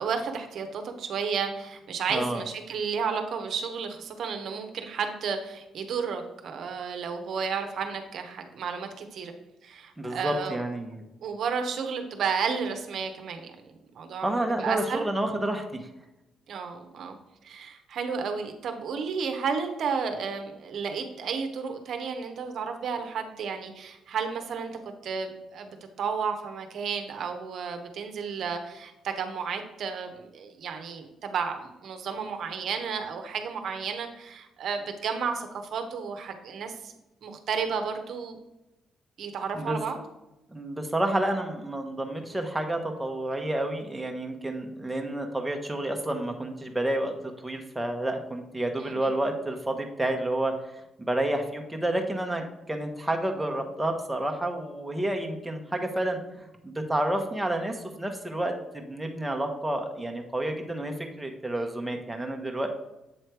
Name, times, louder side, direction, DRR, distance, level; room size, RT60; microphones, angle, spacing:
voice 1, 0.0-9.3 9.6-10.6 11.2-14.3 14.6-15.0 16.5-17.2 17.4-36.9 37.2-38.4 39.2-40.0 48.8-49.1, right 6 dB, 65° right, 5 dB, 0.8 m, -32 dB
voice 2, 2.1-2.4 10.0-11.0 14.2-15.8 39.5-39.8 40.5-50.5 51.0-62.7, right 1 dB, 10° right, 3 dB, 0.9 m, -30 dB
7.8 x 3.2 x 4.6 m, 0.93 s
cardioid pair, 90°, 0 cm